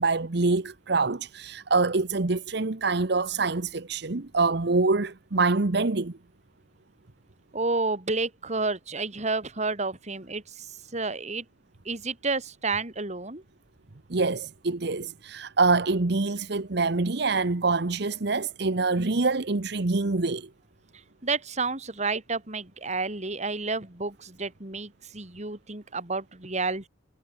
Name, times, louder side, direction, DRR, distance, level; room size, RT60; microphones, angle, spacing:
voice 1, 0.0-6.1 14.1-20.5, right 3 dB, 65° right, 1.1 m, -25 dB
voice 2, 7.5-10.7 10.9-11.4 11.8-13.4 21.2-26.9, right 3 dB, 40° right, 3.3 m, -30 dB
head